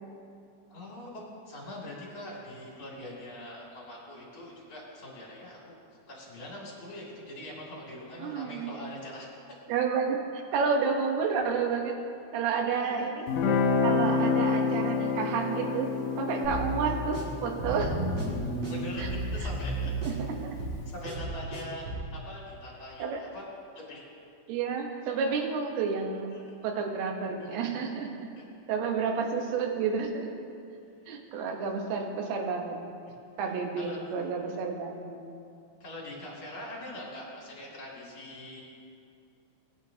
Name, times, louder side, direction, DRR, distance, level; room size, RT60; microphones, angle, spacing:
voice 1, 0.7-5.8 6.1-9.3 10.8-10.9 12.8-13.2 18.7-19.9 20.9-21.9 22.1-23.5 23.7-24.0 26.3-26.5 27.4-27.6 28.4-28.5 33.8-34.0 35.8-38.6, left 1 dB, 35° left, -5 dB, 2.6 m, -43 dB
voice 2, 8.2-8.7 9.7-12.0 12.3-13.3 13.8-15.9 16.2-18.0 19.0-19.1 19.4-19.5 20.1-20.2 20.4-20.6 23.0-23.2 24.5-26.3 26.6-28.3 28.7-30.4 31.1-32.8 33.4-35.2, right 5 dB, 75° right, 2 dB, 2.9 m, -30 dB
Guitar, 13.3-20.4, left 5 dB, 80° left, 1.8 m, -29 dB
sound 1, 16.4-22.1, right 1 dB, 35° right, 1.9 m, -33 dB
19.5 x 9.9 x 2.8 m, 2.6 s
omnidirectional pair, 4.9 m